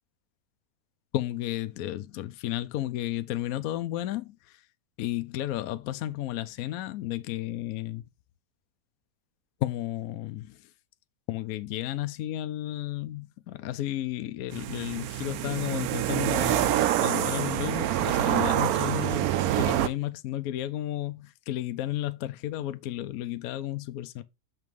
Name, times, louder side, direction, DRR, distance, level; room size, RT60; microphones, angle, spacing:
voice 1, 1.1-4.6 5.0-8.0 9.6-10.6 11.3-19.3 19.6-24.2, left 14 dB, 70° left, 0.9 m, -33 dB
sound 1, 14.5-19.9, right 12 dB, 70° right, 0.9 m, -26 dB
6.7 x 3.1 x 5.2 m
omnidirectional pair, 1.9 m